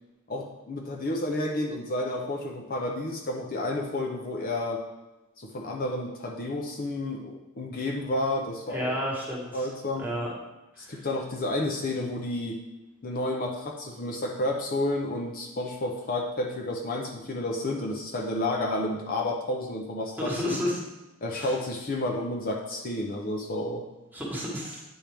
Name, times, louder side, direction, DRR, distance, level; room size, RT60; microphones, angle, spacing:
voice 1, 0.3-4.9 5.4-8.9 9.5-10.1 10.8-12.6 13.0-20.6 21.2-23.9, left 1 dB, 45° left, 0 dB, 0.7 m, -31 dB
voice 2, 8.7-9.7 10.0-10.3 10.8-11.1 20.2-20.8 21.4-21.6 24.1-24.8, equal, 10° right, -3 dB, 1.4 m, -31 dB
8.8 x 4.5 x 3.5 m, 1.0 s
head